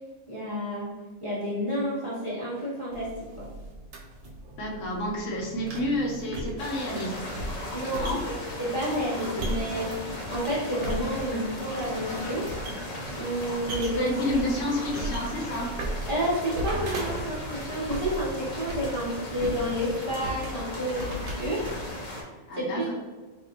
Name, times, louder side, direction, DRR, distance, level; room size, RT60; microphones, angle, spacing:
voice 1, 0.3-0.9 1.2-3.1 3.4-3.5 7.7-8.0 8.6-12.5 13.2-14.4 16.1-21.7 22.6-22.9, equal, 30° right, -9 dB, 0.7 m, -30 dB
sound 1, 2.9-22.0, right 1 dB, 90° right, 1.0 m, -38 dB
voice 2, 4.6-7.2 8.0-8.2 9.3-9.4 13.7-15.7 22.5-22.9, left 1 dB, 75° left, -1 dB, 1.0 m, -30 dB
sound 2, 6.6-22.2, left 1 dB, 45° left, 0.5 m, -37 dB
3.5 x 2.3 x 2.8 m, 1.3 s
omnidirectional pair, 1.3 m